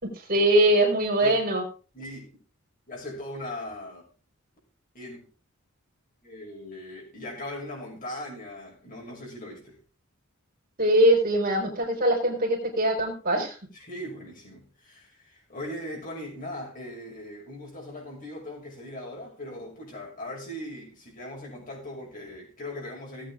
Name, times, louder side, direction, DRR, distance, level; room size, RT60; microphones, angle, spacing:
voice 1, 0.0-1.6 10.8-13.5, right 1 dB, 45° right, 1 dB, 4.2 m, -22 dB
voice 2, 1.9-2.3 2.9-4.1 4.9-5.2 6.2-9.8 13.7-23.3, left 1 dB, 40° left, -2 dB, 6.4 m, -39 dB
17.5 x 8.6 x 3.7 m, 0.36 s
head